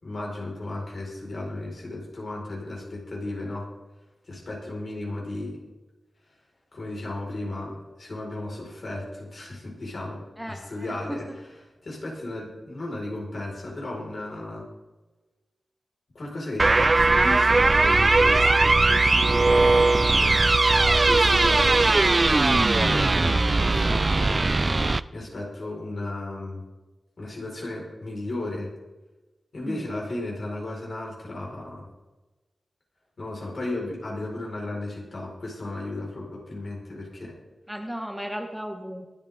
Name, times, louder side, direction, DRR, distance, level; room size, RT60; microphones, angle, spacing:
voice 1, 0.0-3.7 4.3-5.6 6.7-11.2 11.8-14.7 16.1-20.5 21.0-22.0 22.3-24.4 25.1-26.6 27.2-28.7 29.5-31.9 33.2-37.3, left 2 dB, 60° left, -3 dB, 5.0 m, -34 dB
voice 2, 10.4-11.3 29.7-29.9 37.7-39.1, equal, 5° right, 3 dB, 1.4 m, -35 dB
sound 1, 16.6-25.0, right 3 dB, 35° right, 0.4 m, -19 dB
24.0 x 9.0 x 3.7 m, 1.2 s
wide cardioid pair, 80°, 0 cm